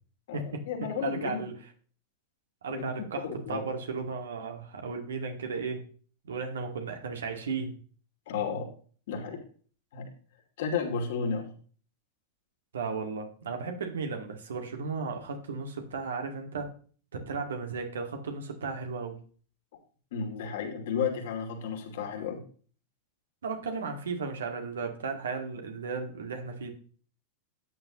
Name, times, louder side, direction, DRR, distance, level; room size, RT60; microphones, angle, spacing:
voice 1, 0.3-1.4 2.7-3.7 8.3-8.7 9.1-9.4 9.9-10.1 10.6-11.5 20.1-22.4, left 6 dB, 55° left, 2 dB, 2.6 m, -33 dB
voice 2, 1.0-1.5 2.6-5.8 6.2-7.7 12.7-16.7 17.1-19.2 23.4-26.7, right 4 dB, 65° right, 5 dB, 2.0 m, -35 dB
13.0 x 9.4 x 3.0 m, 0.43 s
figure-of-eight pair, 90°, 0 cm